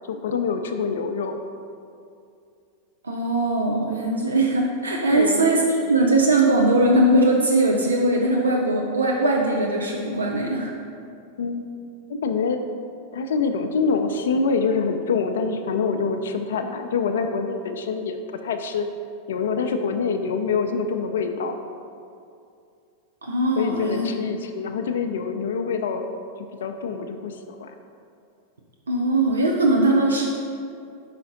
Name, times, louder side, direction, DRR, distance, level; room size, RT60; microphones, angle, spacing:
voice 1, 0.1-1.4 5.1-5.5 11.4-11.7 12.1-12.6 13.1-18.9 19.3-21.6 23.6-26.1 26.4-27.7, left 5 dB, 70° left, 7 dB, 0.4 m, -25 dB
voice 2, 3.0-10.7 23.2-24.1 28.9-30.4, right 1 dB, 80° right, 0 dB, 0.5 m, -20 dB
5.1 x 4.9 x 3.7 m, 2.5 s
figure-of-eight pair, 95°, 0 cm